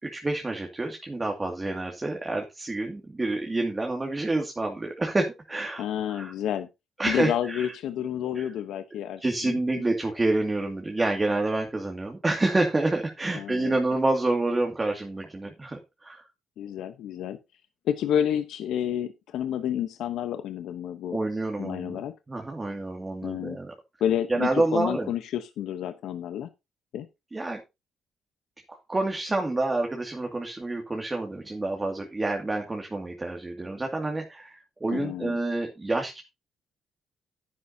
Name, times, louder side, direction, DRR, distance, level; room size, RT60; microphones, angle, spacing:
voice 1, 0.0-5.8 6.1-6.3 7.0-7.7 8.4-8.5 9.2-16.2 21.1-22.0 22.3-23.7 24.3-25.1 27.3-27.6 28.7-36.2, right 2 dB, 20° right, 2 dB, 2.2 m, -28 dB
voice 2, 5.8-6.7 7.1-9.6 13.3-13.8 16.6-17.4 17.8-21.2 21.6-22.1 23.2-23.6 24.0-26.5 26.9-27.1 34.9-35.4, left 10 dB, 80° left, 9 dB, 0.9 m, -30 dB
10.5 x 9.7 x 2.8 m, 0.24 s
cardioid pair, 90°, 0 cm